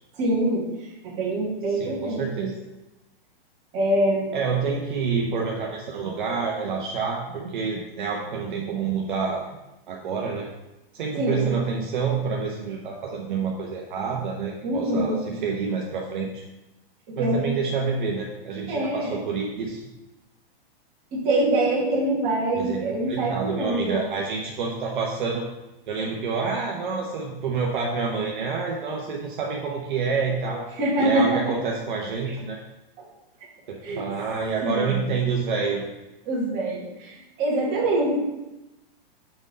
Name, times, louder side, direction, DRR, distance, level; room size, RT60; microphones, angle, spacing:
voice 1, 0.2-2.5 3.7-4.3 11.2-11.6 14.6-15.2 17.1-17.5 18.7-19.2 21.1-24.2 30.8-31.4 33.8-34.0 34.6-35.2 36.3-38.2, right 1 dB, 25° right, -6 dB, 1.9 m, -25 dB
voice 2, 1.8-2.5 4.3-9.5 9.9-10.5 10.9-16.3 17.1-19.8 22.5-22.8 23.1-25.4 25.9-30.7 31.0-32.6 33.7-35.8, right 5 dB, 55° right, -1 dB, 0.9 m, -28 dB
6.2 x 3.9 x 5.3 m, 1.0 s
hypercardioid pair, 170°, 30 cm